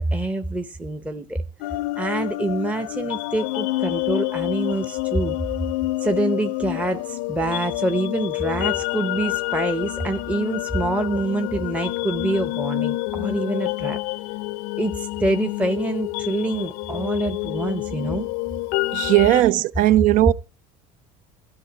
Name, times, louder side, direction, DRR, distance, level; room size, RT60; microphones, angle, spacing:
voice 1, 0.0-1.4 2.0-5.4 6.0-14.0 14.8-18.3, right 2 dB, 10° right, 0.8 m, -26 dB
sound 1, 1.6-19.4, left 19 dB, 85° left, 0.5 m, -28 dB
voice 2, 18.9-20.3, right 15 dB, 55° right, 0.5 m, -17 dB
13.5 x 5.6 x 9.5 m
cardioid pair, 130°, 16 cm